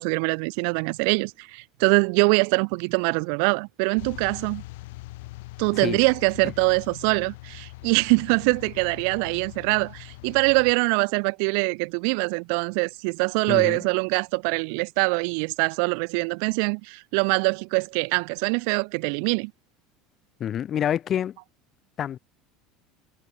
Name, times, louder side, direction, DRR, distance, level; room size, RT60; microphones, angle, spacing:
voice 1, 0.0-4.6 5.6-19.5, right 40 dB or more, 65° right, 0.3 m, -23 dB
sound 1, 4.0-10.7, left 21 dB, 70° left, 2.0 m, -42 dB
voice 2, 13.5-13.8 20.4-21.4 22.0-22.2, left 10 dB, 40° left, 1.1 m, -27 dB
hypercardioid pair, 75°, 0 cm